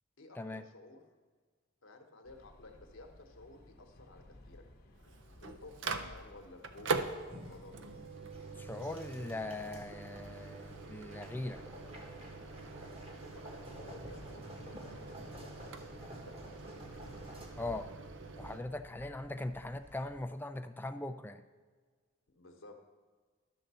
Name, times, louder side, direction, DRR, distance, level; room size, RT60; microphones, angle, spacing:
voice 1, 0.2-1.0 1.8-4.6 5.4-7.8 13.0-15.5 15.8-16.6 19.0-19.1 22.3-22.8, left 2 dB, 75° left, 3 dB, 1.1 m, -55 dB
sound 1, 2.3-20.3, left 1 dB, 50° left, 0.9 m, -57 dB
Microwave oven, 4.9-18.6, right 4 dB, 65° right, 0.5 m, -43 dB
sound 2, 7.0-17.5, equal, 30° right, 1.3 m, -52 dB
voice 2, 8.6-11.6 17.6-17.9 18.4-21.4, left 2 dB, 10° left, 9 dB, 0.3 m, -40 dB
11.5 x 3.9 x 6.8 m, 1.5 s
head